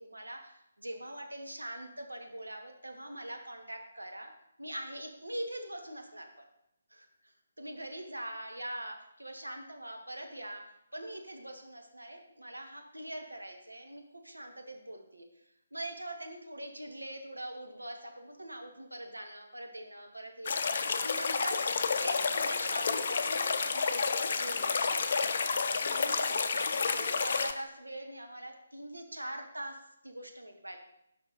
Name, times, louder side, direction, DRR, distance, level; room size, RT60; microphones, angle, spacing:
voice 1, 0.0-4.3 4.6-6.4 6.9-10.6 10.9-15.3 15.7-20.5 21.0-24.9 25.7-30.8, right 1 dB, 80° right, 4 dB, 1.0 m, -43 dB
sound 1, 20.5-27.5, left 5 dB, 45° left, 0.4 m, -30 dB
5.3 x 4.8 x 4.0 m, 0.79 s
figure-of-eight pair, 145°, 0 cm